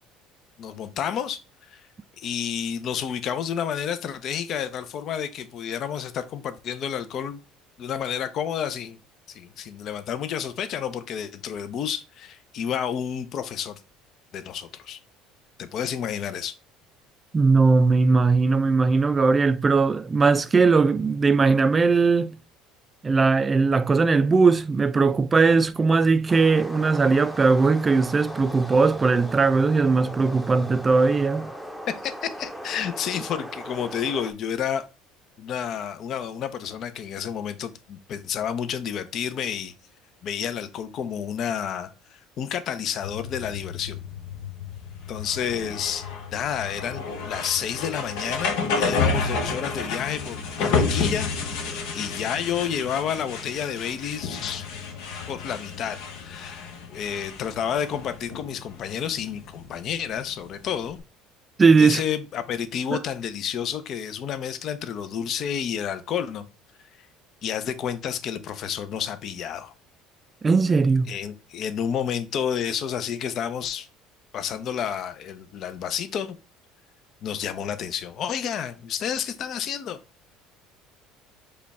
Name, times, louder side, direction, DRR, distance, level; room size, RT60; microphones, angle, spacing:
voice 1, 0.6-1.4 1.7-1.8 2.2-7.4 7.8-9.0 9.3-13.8 14.3-15.0 15.6-16.5 31.9-34.8 35.4-39.7 40.2-44.0 45.1-46.0 46.3-54.7 55.3-61.0 61.8-66.5 67.4-69.7 71.1-73.9 74.3-76.4 77.2-80.0, left 8 dB, 55° left, 0.6 m, -30 dB
voice 2, 17.3-22.4 23.0-31.5 61.6-62.0 70.4-71.1, right 4 dB, 25° right, 0.3 m, -19 dB
sound 1, 26.3-34.3, equal, ahead, 0.7 m, -38 dB
sound 2, 43.0-61.0, left 4 dB, 75° left, 0.9 m, -31 dB
5.0 x 2.3 x 4.0 m
supercardioid pair, 100°, 0 cm